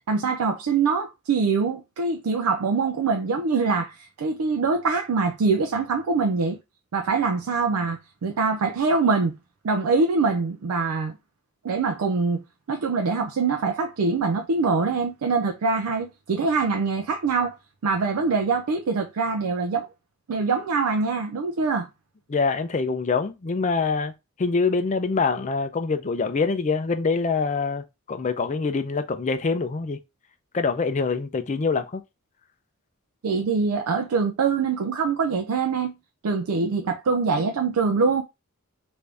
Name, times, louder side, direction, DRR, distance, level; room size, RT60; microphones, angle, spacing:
voice 1, 0.1-6.6 6.9-9.3 9.6-11.2 11.6-12.4 12.7-17.5 17.8-19.9 20.3-21.9 33.2-35.9 36.2-38.2, right 4 dB, 85° right, 0.4 m, -24 dB
voice 2, 22.3-24.1 24.4-30.0 30.5-32.0, left 4 dB, 35° left, 0.4 m, -25 dB
3.3 x 2.6 x 3.3 m
head